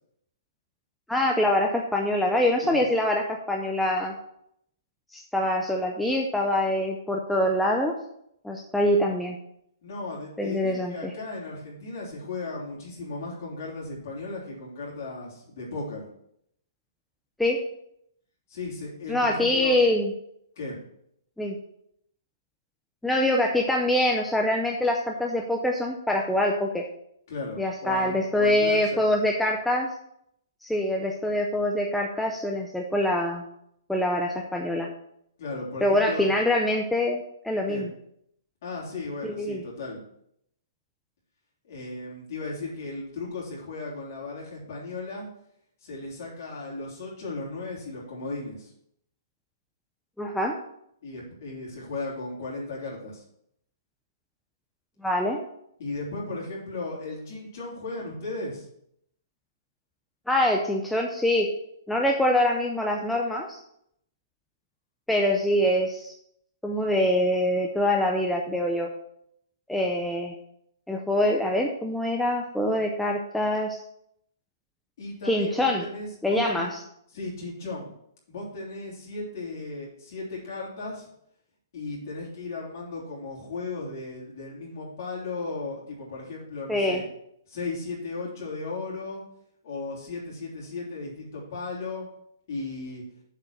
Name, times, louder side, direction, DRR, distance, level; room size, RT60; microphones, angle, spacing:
voice 1, 1.1-4.1 5.1-7.9 8.4-9.4 10.4-11.1 17.4-17.6 19.1-20.1 21.4-21.6 23.0-26.8 27.6-29.9 30.6-33.4 33.9-34.9 35.8-37.9 39.2-39.6 50.2-50.6 55.0-55.4 60.3-61.5 61.9-63.6 65.1-66.1 66.6-68.9 69.7-70.3 70.9-73.8 75.3-75.8 76.2-76.8 86.7-87.0, left 1 dB, ahead, 0 dB, 0.5 m, -24 dB
voice 2, 9.8-16.1 18.5-19.8 20.5-20.8 27.3-29.1 35.4-36.3 37.7-37.9 38.6-40.0 41.7-45.3 45.8-48.7 51.0-53.2 55.8-58.7 75.0-76.7 77.1-77.9 78.3-81.1 81.7-87.0 87.5-89.2 89.6-92.1 92.5-93.0, left 3 dB, 45° left, -4 dB, 3.4 m, -36 dB
7.1 x 5.0 x 6.4 m, 0.73 s
hypercardioid pair, 170°, 2 cm